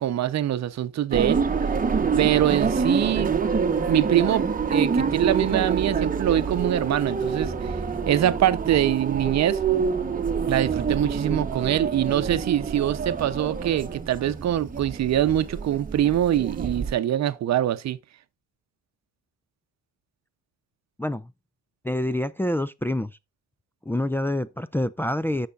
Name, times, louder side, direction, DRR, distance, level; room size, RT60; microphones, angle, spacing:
voice 1, 0.0-1.5 2.2-3.3 3.9-7.7 8.1-9.6 10.5-18.0, right 11 dB, 60° right, 0.8 m, -24 dB
sound 1, 1.1-16.9, right 5 dB, 30° right, 1.0 m, -26 dB
voice 2, 21.0-21.3 21.8-23.2 23.9-25.5, left 1 dB, 5° left, 0.4 m, -26 dB
14.5 x 5.7 x 2.5 m
cardioid pair, 90°, 30 cm